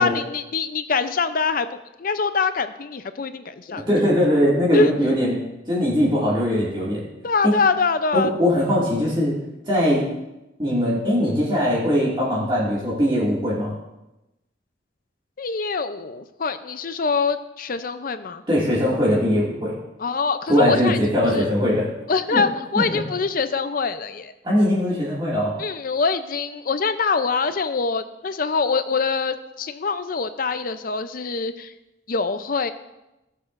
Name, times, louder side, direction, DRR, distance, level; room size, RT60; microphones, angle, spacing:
voice 1, 0.0-3.8 4.2-4.3 4.7-4.9 7.2-8.3 15.4-18.4 20.0-21.0 21.2-21.4 22.1-24.3 25.6-31.7 32.1-32.7, left 4 dB, 45° left, 11 dB, 0.5 m, -24 dB
voice 2, 3.7-7.0 8.1-9.4 9.7-10.0 10.6-13.7 18.5-19.7 20.5-21.9 22.3-22.4 22.7-23.0 24.4-25.6, equal, 25° right, -7 dB, 2.2 m, -21 dB
17.0 x 7.6 x 2.5 m, 0.97 s
head